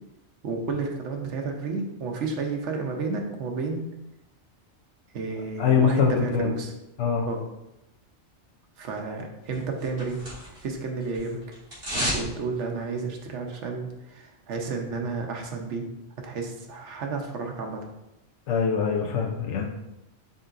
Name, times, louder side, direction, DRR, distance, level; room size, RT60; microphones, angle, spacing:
voice 1, 0.4-3.8 5.1-6.7 7.3-7.4 8.8-10.3 10.6-11.4 12.0-15.9 16.2-17.8, right 4 dB, 85° right, 2 dB, 1.1 m, -31 dB
voice 2, 5.6-6.5 7.0-7.2 18.5-19.7, left 6 dB, 80° left, 1 dB, 0.9 m, -23 dB
sound 1, 9.5-10.7 11.0-12.3 12.6-12.7, equal, 55° right, 2.1 m, -31 dB
5.3 x 3.8 x 2.5 m, 0.91 s
omnidirectional pair, 1.2 m